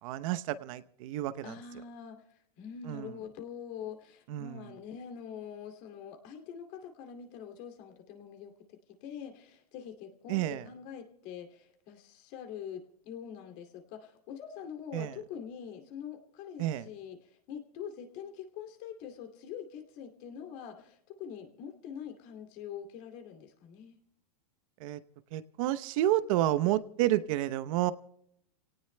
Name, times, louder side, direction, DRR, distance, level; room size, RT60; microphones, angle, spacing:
voice 1, 0.0-1.5 2.9-3.1 4.3-4.7 10.3-10.6 14.9-15.2 16.6-16.9 24.8-25.0 25.3-27.9, right 14 dB, 55° right, 14 dB, 0.8 m, -30 dB
voice 2, 1.4-24.0, left 8 dB, 50° left, 5 dB, 2.6 m, -44 dB
30.0 x 18.0 x 2.2 m, 0.72 s
hypercardioid pair, 115°, 20 cm